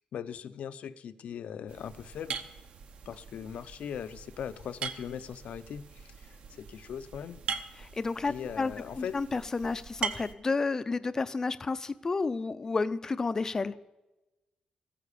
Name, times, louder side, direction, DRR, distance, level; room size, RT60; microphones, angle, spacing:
voice 1, 0.1-2.4 3.1-7.4 8.2-9.2, left 8 dB, 70° left, 13 dB, 0.6 m, -40 dB
sound 1, 1.7-10.3, right 6 dB, 60° right, 1.0 m, -41 dB
voice 2, 7.8-13.7, left 4 dB, 25° left, 13 dB, 0.5 m, -31 dB
14.5 x 10.0 x 6.7 m, 1.0 s
wide cardioid pair, 165°, 2 cm